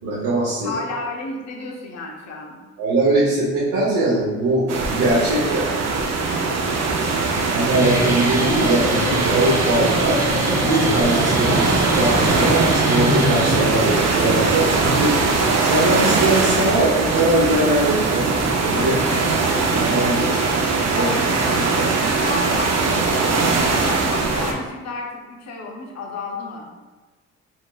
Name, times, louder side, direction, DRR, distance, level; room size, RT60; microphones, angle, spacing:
voice 1, 0.0-0.8 2.8-5.7 7.5-10.3 10.5-19.0 19.8-20.2 21.0-21.1 21.4-21.8, right 2 dB, 85° right, -8 dB, 0.9 m, -21 dB
voice 2, 0.6-2.6 6.8-7.5 19.1-19.3 20.9-26.7, left 2 dB, 60° left, 0 dB, 0.8 m, -32 dB
sound 1, 4.7-24.5, right 3 dB, 60° right, 0.6 m, -21 dB
Guitar, 7.6-14.1, left 1 dB, 10° right, 0.8 m, -25 dB
4.2 x 2.8 x 2.4 m, 1.3 s
cardioid pair, 90°, 30 cm